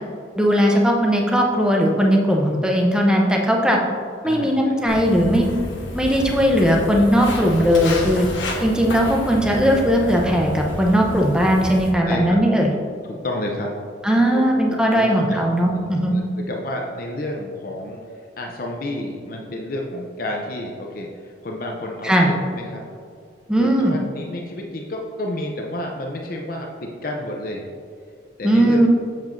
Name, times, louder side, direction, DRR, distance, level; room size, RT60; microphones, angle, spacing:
voice 1, 0.4-3.9 4.2-5.5 5.9-8.3 8.6-12.7 14.0-16.2 22.0-22.3 23.5-24.0 28.4-28.9, equal, 5° right, 0 dB, 0.7 m, -18 dB
voice 2, 4.2-4.9 12.0-12.4 13.0-13.8 14.3-14.4 14.9-18.0 18.4-22.8 23.6-27.7 28.4-28.9, left 1 dB, 50° left, 0 dB, 0.6 m, -30 dB
Walk footsteps, 4.9-11.9, left 1 dB, 80° left, 1.2 m, -30 dB
7.5 x 7.3 x 2.6 m, 2.3 s
head